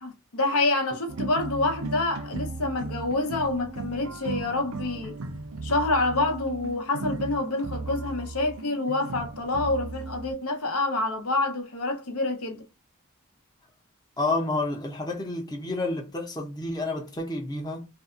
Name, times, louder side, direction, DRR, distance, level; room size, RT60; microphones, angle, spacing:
voice 1, 0.0-5.2 5.6-12.7, left 2 dB, 80° left, 0.8 m, -27 dB
sound 1, 1.1-10.3, right 3 dB, 75° right, 0.5 m, -36 dB
voice 2, 14.2-17.9, left 2 dB, 20° left, 0.5 m, -29 dB
2.6 x 2.3 x 2.4 m
head